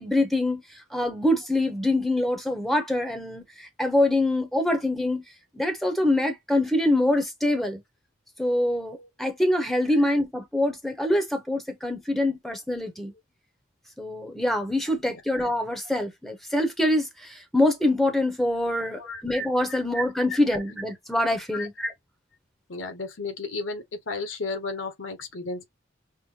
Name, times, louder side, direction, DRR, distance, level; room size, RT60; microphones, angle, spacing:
voice 1, 0.0-5.2 5.5-7.8 8.4-13.1 14.0-21.9, left 1 dB, ahead, 0.8 m, -25 dB
voice 2, 18.8-19.2 19.7-19.8 20.3-20.4 21.5-21.7 22.7-25.6, left 3 dB, 75° left, 1.0 m, -34 dB
5.6 x 2.1 x 3.1 m
head